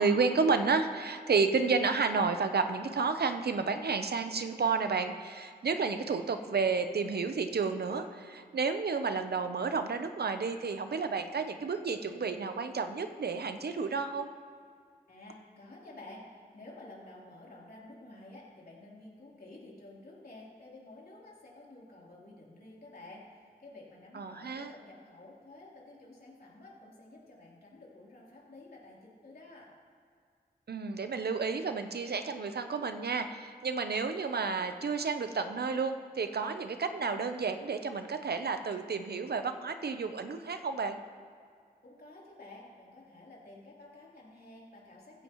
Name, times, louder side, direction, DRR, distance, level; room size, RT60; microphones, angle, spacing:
voice 1, 0.0-14.3 24.1-24.7 30.7-41.0, right 4 dB, 75° right, 8 dB, 0.8 m, -31 dB
voice 2, 15.1-29.7 41.8-45.2, left 2 dB, 65° left, -5 dB, 3.5 m, -51 dB
15.5 x 15.0 x 3.1 m, 2.2 s
wide cardioid pair, 65°, 17 cm